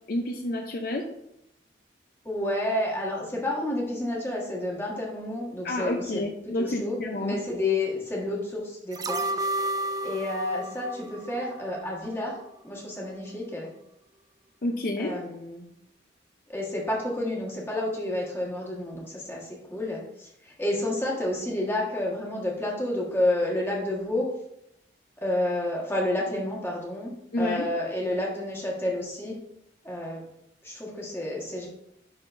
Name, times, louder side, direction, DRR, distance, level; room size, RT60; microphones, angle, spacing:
voice 1, 0.1-1.1 5.6-7.4 14.6-15.1 27.3-27.7, left 1 dB, 50° left, 3 dB, 0.5 m, -29 dB
voice 2, 2.2-6.2 6.6-9.2 10.0-12.3 12.6-13.7 15.0-15.6 16.5-24.3 25.2-27.1 27.4-29.4 29.8-30.2 30.6-31.7, left 1 dB, 15° left, -4 dB, 1.3 m, -30 dB
sound 1, 8.9-12.1 12.4-12.5, right 1 dB, 20° right, 0.3 m, -32 dB
11.0 x 3.8 x 2.5 m, 0.80 s
head